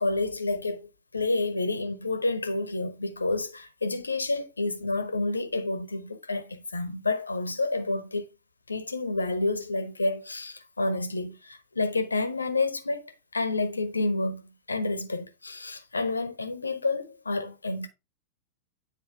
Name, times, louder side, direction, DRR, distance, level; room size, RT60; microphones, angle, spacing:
voice 1, 0.0-8.3 8.7-14.4 14.7-17.9, left 2 dB, 80° left, 1.0 m, -29 dB
9.6 x 4.5 x 3.2 m
figure-of-eight pair, 90°, 0 cm